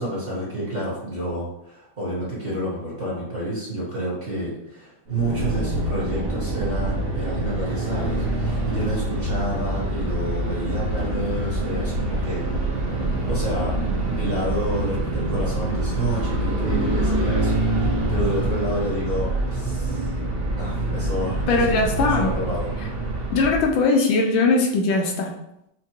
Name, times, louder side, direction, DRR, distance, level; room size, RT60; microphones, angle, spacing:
voice 1, 0.0-12.4 13.3-13.7 14.1-20.1 20.5-22.7, right 1 dB, 35° right, -7 dB, 1.3 m, -29 dB
sound 1, 5.1-23.8, right 1 dB, 50° right, 0.7 m, -25 dB
voice 2, 21.5-22.3 23.3-25.3, left 3 dB, 75° left, 1 dB, 1.3 m, -20 dB
5.9 x 2.2 x 2.8 m, 0.81 s
omnidirectional pair, 2.1 m